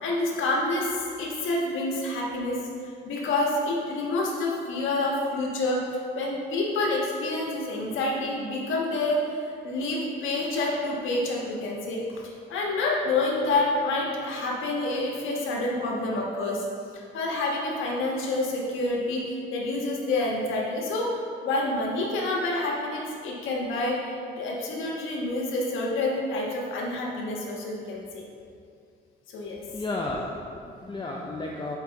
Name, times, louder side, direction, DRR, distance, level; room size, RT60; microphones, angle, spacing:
voice 1, 0.0-2.6 3.0-5.8 6.1-9.3 9.6-16.7 17.1-28.3 29.3-29.6, left 2 dB, 80° left, -2 dB, 1.3 m, -28 dB
voice 2, 29.7-31.8, left 2 dB, 25° left, -1 dB, 0.6 m, -33 dB
5.8 x 4.9 x 4.1 m, 2.3 s
cardioid pair, 90°, 20 cm